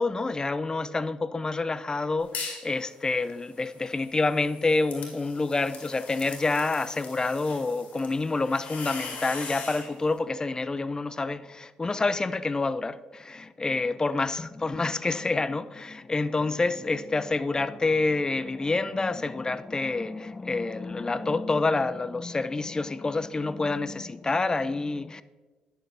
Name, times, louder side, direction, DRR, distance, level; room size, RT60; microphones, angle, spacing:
voice 1, 0.0-25.2, left 3 dB, 25° left, 0.5 m, -28 dB
sound 1, 2.2-2.7 3.1-9.9, left 4 dB, 65° left, 2.4 m, -41 dB
10.5 x 6.6 x 3.4 m
supercardioid pair, 60°, 3 cm